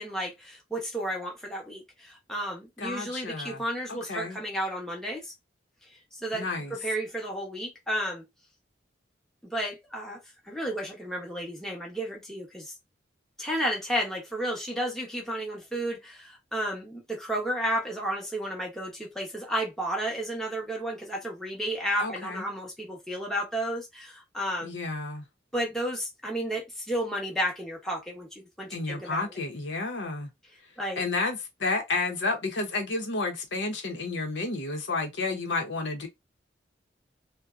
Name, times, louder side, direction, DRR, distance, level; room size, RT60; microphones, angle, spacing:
voice 1, 0.0-5.3 6.1-8.2 9.4-10.2 10.4-12.7 13.4-24.7 25.5-29.2 30.8-31.0, equal, ahead, 0.6 m, -32 dB
voice 2, 2.8-3.6 3.9-4.4 6.3-6.8 22.0-22.4 24.6-25.2 28.7-30.3 31.0-36.1, left 3 dB, 75° left, 0.7 m, -31 dB
2.6 x 2.1 x 2.3 m
head